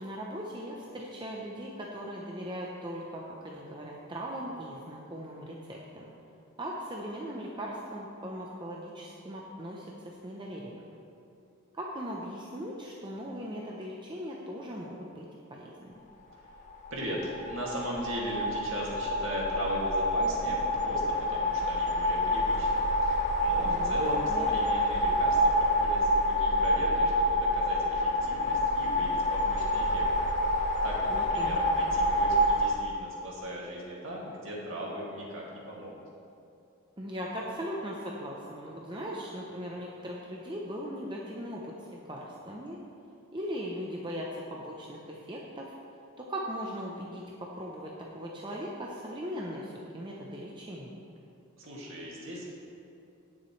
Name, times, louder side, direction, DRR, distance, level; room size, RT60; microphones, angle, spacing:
voice 1, 0.0-6.1 6.6-10.8 11.7-15.2 15.5-15.9 23.6-24.0 24.3-24.5 31.1-31.7 37.0-41.7 42.0-42.8 43.3-45.7 46.2-51.0, equal, 20° right, -3 dB, 0.7 m, -39 dB
sound 1, 16.7-32.7, left 1 dB, 35° left, 1.1 m, -27 dB
voice 2, 16.9-35.9 51.6-52.5, right 1 dB, 60° right, -4 dB, 2.3 m, -38 dB
17.0 x 7.2 x 3.3 m, 2.6 s
head